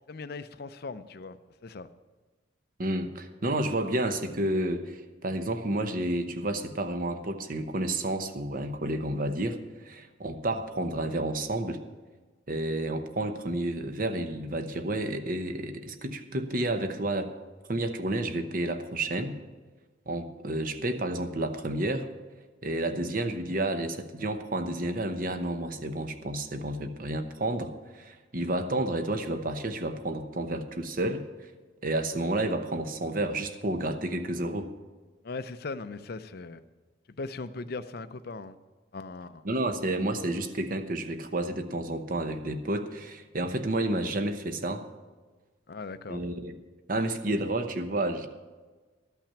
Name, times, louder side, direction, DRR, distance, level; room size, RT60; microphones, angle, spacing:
voice 1, 0.1-1.4 1.6-1.9 35.2-36.6 37.1-38.6 38.9-39.5 45.7-46.2, left 3 dB, 50° left, 0.5 m, -39 dB
voice 2, 2.8-11.8 12.5-17.3 17.7-19.3 20.1-22.1 22.6-31.2 31.8-34.7 39.4-44.9 46.1-46.5 46.9-48.3, right 1 dB, 45° right, 0.9 m, -30 dB
13.0 x 5.8 x 8.7 m
head